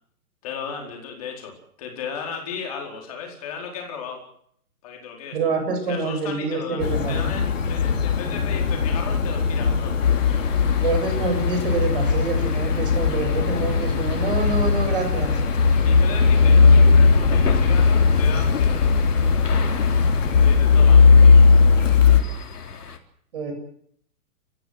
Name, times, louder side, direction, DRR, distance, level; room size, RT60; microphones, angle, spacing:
voice 1, 0.4-4.2 4.8-5.4 5.9-9.9 15.8-19.4 20.4-21.3, left 6 dB, 25° left, 1 dB, 4.6 m, -35 dB
voice 2, 5.3-7.4 10.8-15.4 21.1-21.3 23.3-23.5, right 3 dB, 35° right, 5 dB, 7.5 m, -26 dB
sound 1, 6.8-22.2, left 5 dB, 55° left, 3.8 m, -17 dB
sound 2, 10.0-23.0, left 6 dB, 80° left, 4.1 m, -36 dB
29.5 x 15.5 x 7.9 m, 0.66 s
hypercardioid pair, 180°, 46 cm